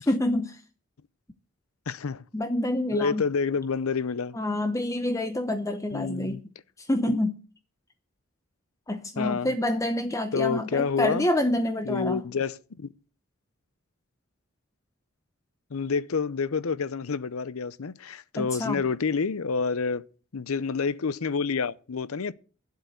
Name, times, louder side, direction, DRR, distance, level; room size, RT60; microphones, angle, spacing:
voice 1, 0.1-0.6 2.3-3.2 4.3-6.4 6.8-7.4 8.9-12.2 18.4-18.8, left 1 dB, 15° left, 0.6 m, -27 dB
voice 2, 1.9-2.2 2.9-4.4 5.9-6.4 7.1-7.2 9.2-9.5 10.3-11.3 11.9-12.9 15.7-20.0 20.3-22.3, left 5 dB, 85° left, 0.6 m, -28 dB
9.7 x 7.9 x 7.9 m
head